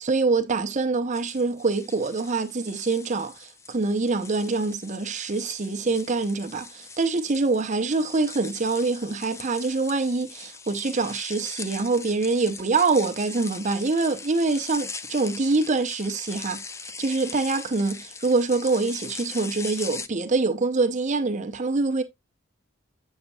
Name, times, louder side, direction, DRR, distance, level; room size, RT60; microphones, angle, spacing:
voice 1, 0.0-16.6 17.0-22.0, right 3 dB, 35° right, 0.6 m, -25 dB
sound 1, 1.1-20.1, left 4 dB, 15° left, 0.3 m, -41 dB
8.0 x 6.4 x 2.3 m
head